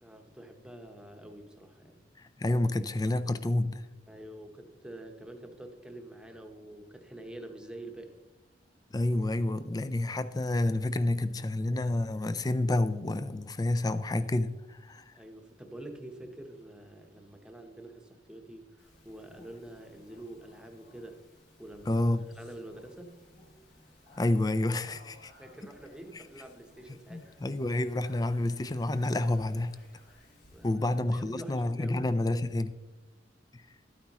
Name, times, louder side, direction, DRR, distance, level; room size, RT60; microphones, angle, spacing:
voice 1, 0.0-2.0 4.1-8.2 15.1-21.2 21.6-22.1 22.4-23.3 25.4-27.4 30.5-32.1, right 1 dB, 5° right, 0.9 m, -47 dB
voice 2, 2.2-3.9 8.9-15.1 21.9-22.3 24.2-25.3 27.1-29.8 30.6-32.8 33.5-33.6, left 2 dB, 20° left, 0.4 m, -29 dB
Speech, 18.8-30.7, left 1 dB, 70° left, 2.8 m, -58 dB
13.0 x 9.2 x 3.0 m
head